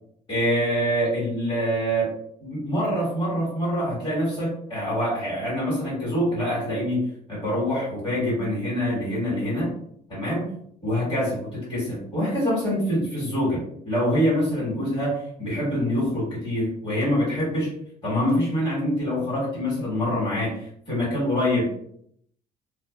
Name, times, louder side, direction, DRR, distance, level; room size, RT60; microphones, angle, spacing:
voice 1, 0.3-2.1 2.4-7.0 7.3-9.7 10.1-10.4 10.8-17.7 18.0-21.6, equal, 30° left, -6 dB, 1.4 m, -25 dB
2.5 x 2.3 x 2.3 m, 0.67 s
cardioid pair, 110°, 17 cm